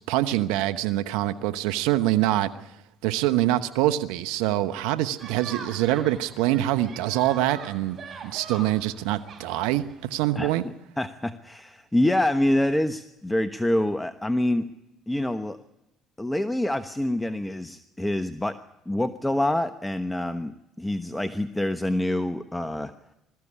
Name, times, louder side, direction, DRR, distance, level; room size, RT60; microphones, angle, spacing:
voice 1, 0.1-2.5 3.0-8.0 8.2-10.6, right 14 dB, 80° right, 11 dB, 0.9 m, -25 dB
sound 1, 5.2-10.2, right 5 dB, 50° right, 6.4 m, -42 dB
voice 2, 10.3-14.7 15.1-15.6 16.2-18.6 18.9-22.9, left 1 dB, 10° left, 10 dB, 1.1 m, -26 dB
21.5 x 14.0 x 9.9 m, 0.88 s
supercardioid pair, 70°, 0 cm